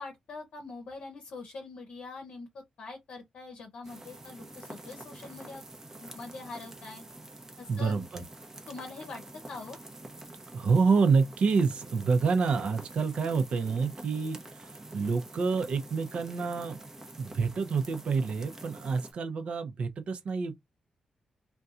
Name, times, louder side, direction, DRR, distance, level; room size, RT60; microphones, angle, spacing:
voice 1, 0.0-2.5 2.8-5.6 6.0-7.0 7.6-7.9 8.7-9.2 9.5-9.8, left 3 dB, 70° left, 0.6 m, -43 dB
sound 1, 3.8-19.1, right 2 dB, 20° right, 0.6 m, -47 dB
voice 2, 7.7-8.2 10.5-16.8 17.2-20.5, right 5 dB, 65° right, 0.6 m, -28 dB
2.7 x 2.2 x 2.4 m
wide cardioid pair, 115°, 2 cm